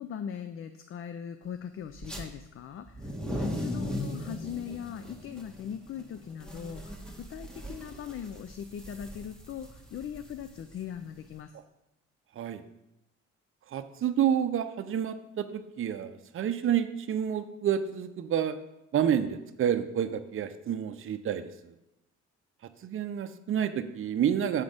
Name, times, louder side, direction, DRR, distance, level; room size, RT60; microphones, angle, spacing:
voice 1, 0.0-11.5, left 8 dB, 45° left, 10 dB, 0.4 m, -40 dB
sound 1, 2.0-2.2 2.8-11.3, equal, 5° left, 1.2 m, -39 dB
voice 2, 13.7-18.6 18.9-21.7 22.8-24.6, right 9 dB, 45° right, 9 dB, 0.6 m, -29 dB
7.2 x 4.1 x 5.0 m, 0.89 s
cardioid pair, 90°, 30 cm